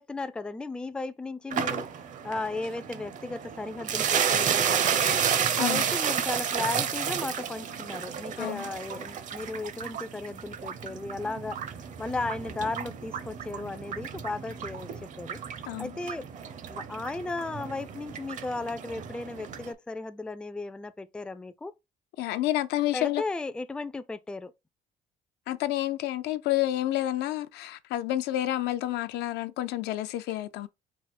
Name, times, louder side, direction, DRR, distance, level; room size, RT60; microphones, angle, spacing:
voice 1, 0.0-5.2 5.6-11.6 12.0-15.4 15.8-16.3 16.7-21.7 22.9-24.5, left 3 dB, 5° left, 0.3 m, -35 dB
sound 1, 1.5-19.7, right 8 dB, 50° right, 0.6 m, -31 dB
voice 2, 22.2-23.2 25.5-30.7, left 14 dB, 80° left, 0.5 m, -29 dB
4.6 x 2.1 x 4.1 m
cardioid pair, 110°, 17 cm